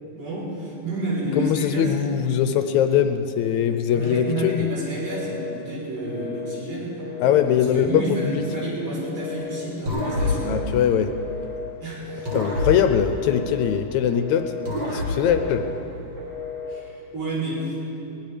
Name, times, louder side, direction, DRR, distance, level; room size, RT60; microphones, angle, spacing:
voice 1, 0.2-2.0 3.9-7.0 7.3-10.6 11.8-12.3 16.7-17.8, right 1 dB, 75° right, -6 dB, 5.6 m, -30 dB
voice 2, 1.3-4.6 7.2-8.4 10.5-11.1 12.3-14.5 14.9-15.7, left 9 dB, 75° left, 8 dB, 1.8 m, -21 dB
Telephone, 3.9-4.5 5.0-5.5 6.0-6.5 7.0-7.6 8.0-8.6 9.0-9.6 10.1-10.6 11.1-11.6 12.1-12.7 13.1-13.7 14.1-14.7 15.2-15.7 16.2-16.7, left 4 dB, 30° right, 5.7 m, -34 dB
sound 1, 9.9-11.7 12.3-14.1 14.6-16.4, left 2 dB, 50° right, 3.1 m, -29 dB
22.5 x 19.0 x 3.4 m, 2.8 s
omnidirectional pair, 3.7 m